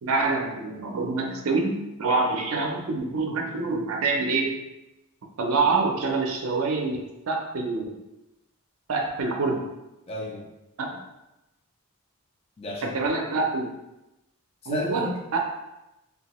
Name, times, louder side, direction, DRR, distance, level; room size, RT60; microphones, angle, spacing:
voice 1, 0.0-4.6 5.4-8.0 8.9-9.6 10.8-11.0 12.8-13.8 14.7-15.4, right 3 dB, 70° right, 2 dB, 0.5 m, -26 dB
voice 2, 10.1-10.5 12.6-12.9 14.6-15.4, left 1 dB, 25° left, -2 dB, 0.4 m, -33 dB
2.7 x 2.3 x 2.9 m, 0.94 s
head